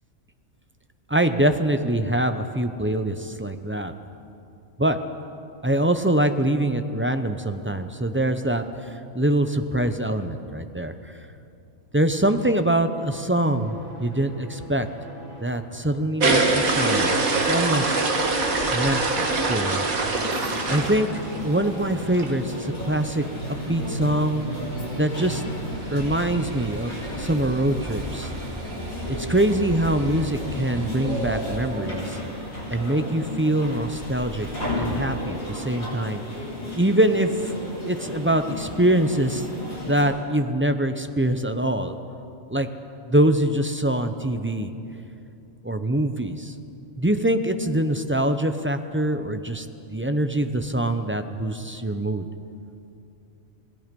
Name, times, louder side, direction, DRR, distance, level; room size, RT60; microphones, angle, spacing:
voice 1, 1.1-3.9 4.8-5.0 5.6-11.3 11.9-14.9 15.4-17.9 18.7-20.2 20.7-21.1 21.4-23.2 23.7-24.4 24.9-25.4 25.9-28.3 29.1-32.2 32.7-34.5 34.8-36.4 36.8-37.5 37.8-39.5 39.9-42.0 42.5-42.7 43.1-44.7 45.6-46.5 47.0-52.3, right 1 dB, 15° right, 8 dB, 0.5 m, -24 dB
sound 1, 12.5-31.6, right 2 dB, 60° left, 5.7 m, -41 dB
sound 2, 16.2-21.7 22.1-22.3 22.7-22.8 22.9-23.0 23.3-31.6, right 3 dB, 85° right, 2.2 m, -27 dB
sound 3, 20.1-40.0, left 1 dB, 75° left, 7.3 m, -34 dB
28.0 x 18.0 x 5.3 m, 2.7 s
omnidirectional pair, 1.4 m